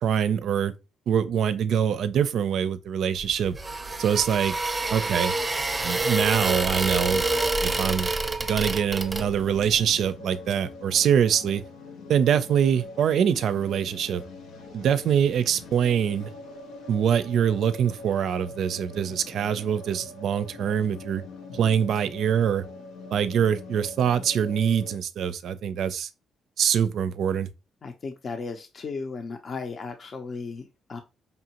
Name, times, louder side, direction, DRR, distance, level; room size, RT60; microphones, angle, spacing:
voice 1, 0.0-0.7 1.1-3.6 4.0-4.5 4.9-5.3 5.8-7.2 7.6-8.1 8.4-11.6 12.1-14.2 14.7-16.3 16.9-21.2 21.5-22.6 23.1-26.1 26.6-27.5, right 8 dB, 70° right, 0.4 m, -24 dB
sound 1, 3.2-9.6, right 2 dB, 20° right, 0.6 m, -27 dB
sound 2, 9.0-25.0, left 3 dB, 90° left, 0.6 m, -43 dB
voice 2, 27.8-31.0, left 4 dB, 45° left, 0.6 m, -35 dB
5.3 x 2.6 x 2.9 m
cardioid pair, 90°, 0 cm